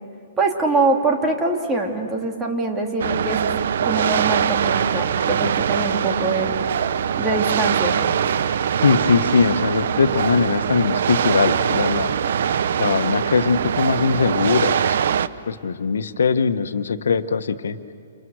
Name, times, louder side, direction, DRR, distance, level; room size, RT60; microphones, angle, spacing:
voice 1, 0.4-3.5 3.8-6.5 7.2-8.1, right 3 dB, 10° right, 1 dB, 2.9 m, -23 dB
sound 1, 3.0-15.3, right 8 dB, 65° right, 0.8 m, -22 dB
voice 2, 8.8-12.2 12.8-15.0 15.5-17.8, left 5 dB, 85° left, 9 dB, 1.3 m, -21 dB
29.0 x 29.0 x 6.5 m, 2.5 s
hypercardioid pair, 150°, 0 cm